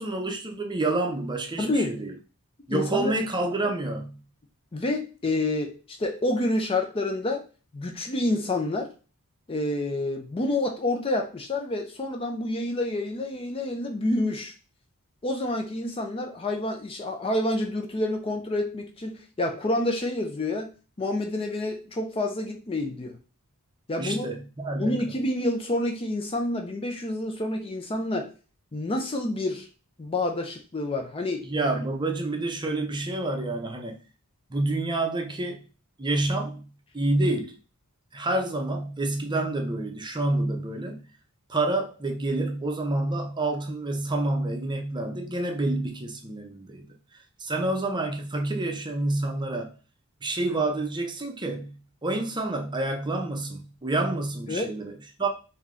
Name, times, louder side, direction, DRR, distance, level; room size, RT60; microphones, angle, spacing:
voice 1, 0.0-2.1 2.7-4.2 24.0-25.0 31.4-34.0 34.5-35.6 36.0-36.7 36.9-37.6 38.1-41.0 41.5-46.9 47.4-49.7 50.2-55.3, right 2 dB, 20° right, 0.6 m, -28 dB
voice 2, 1.6-2.0 2.7-3.1 4.7-7.4 7.7-8.9 9.5-14.5 15.2-20.7 21.0-23.2 23.9-24.3 24.8-28.3 28.7-29.7 30.0-31.5 54.5-54.7, left 1 dB, 25° left, 0.5 m, -28 dB
3.5 x 2.7 x 3.6 m
head